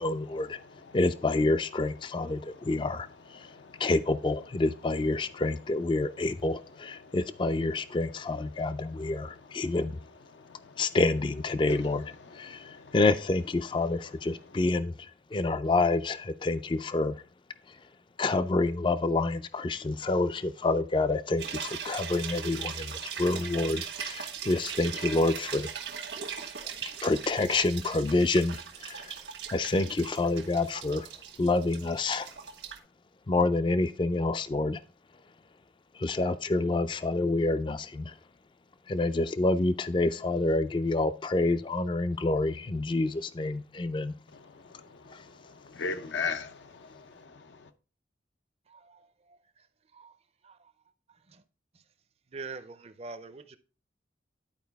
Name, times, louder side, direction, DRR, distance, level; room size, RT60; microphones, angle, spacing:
voice 1, 0.0-0.6 0.9-3.1 3.8-9.9 10.8-12.0 12.4-12.6 12.9-14.9 15.3-17.1 18.2-22.9 23.2-25.7 27.0-29.0 29.5-31.1 31.4-32.3 33.3-34.8 36.0-38.1 38.9-44.1, left 2 dB, 25° left, 0.3 m, -27 dB
voice 2, 0.5-1.0 2.4-2.6 3.4-3.9 7.0-7.1 8.6-8.7 9.0-9.1 10.5-10.6 11.7-11.8 12.2-12.9 45.0-45.2 45.6-47.0 47.3-47.4, left 4 dB, 80° left, 0.6 m, -38 dB
sound 1, 21.4-32.8, right 7 dB, 80° right, 1.3 m, -39 dB
voice 3, 48.7-49.4 49.9-50.1 50.4-50.6 51.3-51.4 52.3-53.6, right 4 dB, 35° right, 0.5 m, -44 dB
10.5 x 4.7 x 3.4 m
head